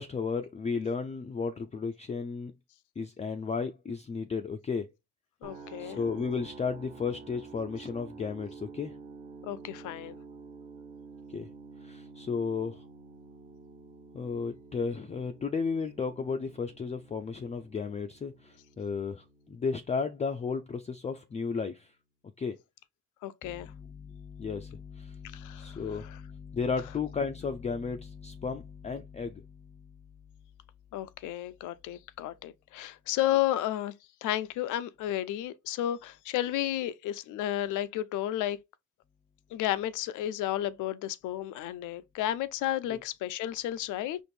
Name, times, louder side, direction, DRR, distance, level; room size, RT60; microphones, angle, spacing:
voice 1, 0.0-2.5 3.0-4.8 5.8-8.9 11.3-11.5 11.9-12.7 14.1-18.3 18.8-19.2 19.5-21.7 22.4-22.5 23.4-29.3 42.9-43.0, left 5 dB, 25° left, 0.3 m, -34 dB
voice 2, 5.4-6.0 9.4-10.2 23.2-23.7 25.3-26.2 30.9-33.9 34.2-38.6 39.5-44.2, left 13 dB, 85° left, 0.5 m, -32 dB
sound 1, 5.4-21.3, right 4 dB, 25° right, 0.9 m, -50 dB
4.3 x 2.5 x 3.2 m
cardioid pair, 90°, 30 cm